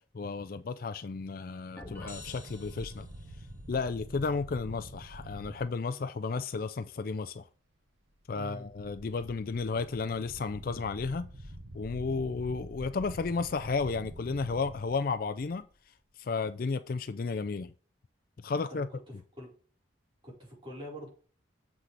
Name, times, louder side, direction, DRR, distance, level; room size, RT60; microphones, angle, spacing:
voice 1, 0.1-3.1 3.7-7.5 8.3-11.3 11.7-15.7 16.2-17.7 18.4-18.9, left 4 dB, 45° left, 0.4 m, -33 dB
sound 1, 1.8-3.5, left 2 dB, 10° left, 1.3 m, -48 dB
sound 2, 1.8-5.7 8.5-15.8, right 1 dB, 80° right, 1.2 m, -47 dB
voice 2, 8.3-8.7 18.5-19.5 20.2-21.1, equal, 25° right, 4.4 m, -45 dB
7.5 x 6.0 x 3.3 m
head